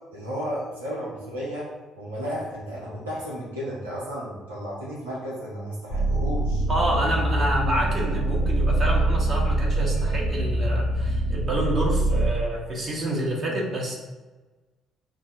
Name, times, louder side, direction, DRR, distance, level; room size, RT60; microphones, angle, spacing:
voice 1, 0.1-1.7 2.0-6.6, equal, 85° right, -6 dB, 0.7 m, -33 dB
sound 1, 5.9-12.3, right 1 dB, 75° left, 0.6 m, -24 dB
voice 2, 6.7-14.0, right 1 dB, 45° right, -2 dB, 1.2 m, -28 dB
6.0 x 2.1 x 2.8 m, 1.2 s
figure-of-eight pair, 45°, 0 cm